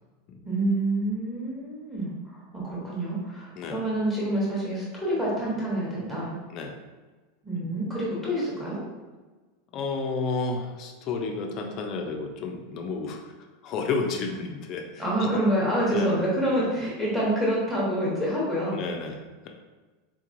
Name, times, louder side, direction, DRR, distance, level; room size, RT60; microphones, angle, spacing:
voice 1, 0.4-6.3 7.4-8.8 15.0-18.8, right 1 dB, 5° right, -6 dB, 0.9 m, -27 dB
voice 2, 9.7-13.2 13.6-15.4 15.9-16.2 16.6-16.8 18.7-19.5, left 4 dB, 30° left, 3 dB, 0.4 m, -31 dB
3.7 x 3.0 x 2.5 m, 1.3 s
supercardioid pair, 175°, 0 cm